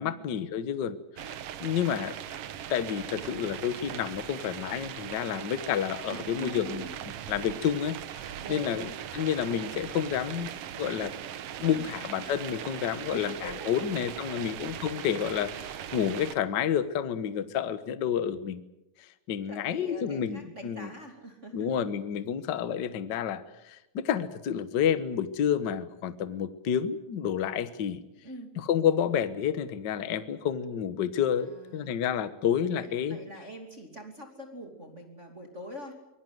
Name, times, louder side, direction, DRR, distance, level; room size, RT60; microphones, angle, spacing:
voice 1, 0.0-2.1 2.7-6.8 7.3-10.5 10.8-11.1 11.6-18.6 19.3-20.9 21.5-28.0 28.6-33.2, left 8 dB, 75° left, 12 dB, 1.0 m, -30 dB
sound 1, 1.2-16.3, right 10 dB, 65° right, 1.5 m, -40 dB
voice 2, 6.1-7.0 8.4-8.9 11.6-11.9 13.1-14.1 14.4-14.6 19.5-21.7 28.2-28.5 31.4-31.9 32.8-36.0, equal, 20° right, 3 dB, 2.7 m, -44 dB
24.5 x 22.0 x 7.9 m, 0.90 s
omnidirectional pair, 4.0 m